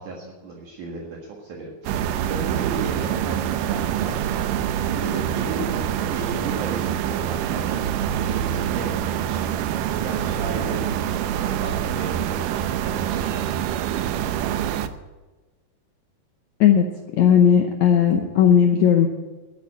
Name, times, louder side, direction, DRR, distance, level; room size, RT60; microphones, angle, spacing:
voice 1, 0.0-9.0 9.3-10.8 11.3-13.4, right 3 dB, 55° right, -2 dB, 2.8 m, -35 dB
sound 1, 1.8-14.9, right 10 dB, 85° right, 1.9 m, -25 dB
voice 2, 17.2-19.1, left 8 dB, 85° left, 4 dB, 1.6 m, -16 dB
12.0 x 8.8 x 9.2 m, 1.2 s
omnidirectional pair, 4.6 m